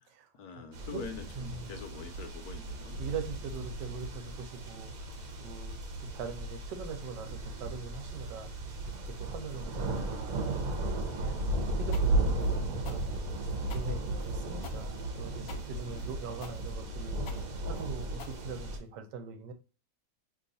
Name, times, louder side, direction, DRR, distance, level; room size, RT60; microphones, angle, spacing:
voice 1, 0.4-2.9, left 5 dB, 70° left, 1.0 m, -44 dB
sound 1, 0.7-18.8, right 2 dB, 65° right, 1.1 m, -35 dB
voice 2, 1.3-1.8 3.0-8.5 8.8-13.3 13.7-19.5, right 5 dB, 85° right, 1.3 m, -42 dB
sound 2, 11.9-19.0, left 6 dB, 90° left, 1.2 m, -50 dB
3.0 x 2.4 x 3.8 m
omnidirectional pair, 1.8 m